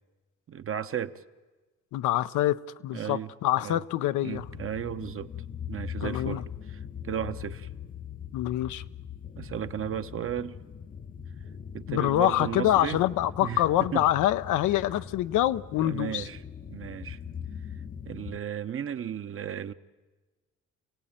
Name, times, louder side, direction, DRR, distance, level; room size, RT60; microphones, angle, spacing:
voice 1, 0.5-1.2 2.9-3.3 3.6-3.8 4.2-5.3 5.7-7.7 9.4-10.6 11.7-13.0 13.4-14.0 15.8-16.4 16.7-17.2 18.0-19.7, right 9 dB, 45° right, 0.9 m, -34 dB
voice 2, 1.9-4.4 6.0-6.4 8.3-8.8 11.9-16.3, left 14 dB, 85° left, 0.7 m, -26 dB
sound 1, 4.3-18.4, left 8 dB, 30° left, 0.7 m, -41 dB
27.0 x 17.0 x 8.9 m
cardioid pair, 90°, 30 cm